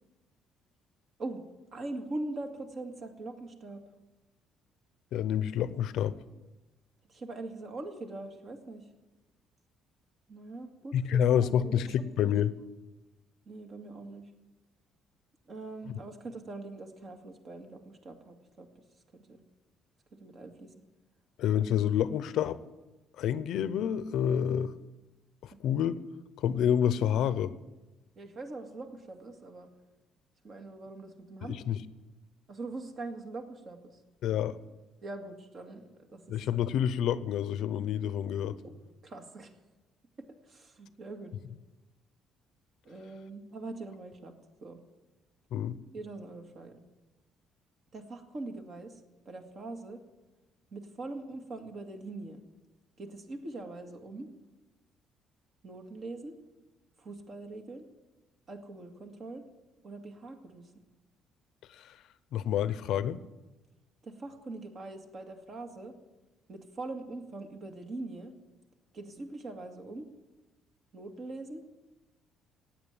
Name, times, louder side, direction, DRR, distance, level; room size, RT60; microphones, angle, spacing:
voice 1, 1.7-3.8 7.1-8.9 10.3-11.8 12.2-12.3 13.5-14.3 15.5-18.7 19.1-19.4 20.1-20.7 25.5-25.6 28.2-29.7 30.4-31.6 32.5-34.0 35.0-36.4 38.6-39.5 40.4-41.3 42.8-44.3 44.6-44.8 45.9-46.8 47.9-50.0 50.7-52.4 53.0-54.3 55.6-56.3 57.0-57.9 58.5-59.5 59.8-60.7 64.0-66.0 66.5-68.3 68.9-70.1 70.9-71.6, right 2 dB, 40° right, 5 dB, 2.1 m, -42 dB
voice 2, 5.1-6.1 10.9-12.6 21.4-22.6 23.2-24.7 25.6-26.0 26.4-27.5 31.5-31.8 34.2-34.6 36.3-38.6 45.5-45.7 61.8-61.9 62.3-63.2, left 9 dB, 65° left, 15 dB, 0.8 m, -28 dB
16.5 x 9.2 x 9.1 m, 1.1 s
cardioid pair, 150°, 0 cm